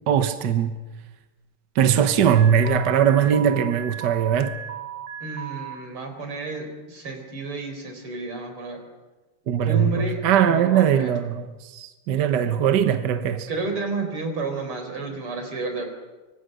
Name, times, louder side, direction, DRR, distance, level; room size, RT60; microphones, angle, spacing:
voice 1, 0.1-0.7 1.7-4.6 9.5-11.5 11.7-13.5, right 8 dB, 60° right, 1.6 m, -20 dB
Alarm, 2.3-5.7, right 9 dB, 40° right, 1.9 m, -36 dB
voice 2, 5.2-8.8 9.6-10.2 10.5-11.1 13.5-15.9, right 3 dB, 80° right, 4.9 m, -31 dB
25.0 x 25.0 x 6.7 m
omnidirectional pair, 2.4 m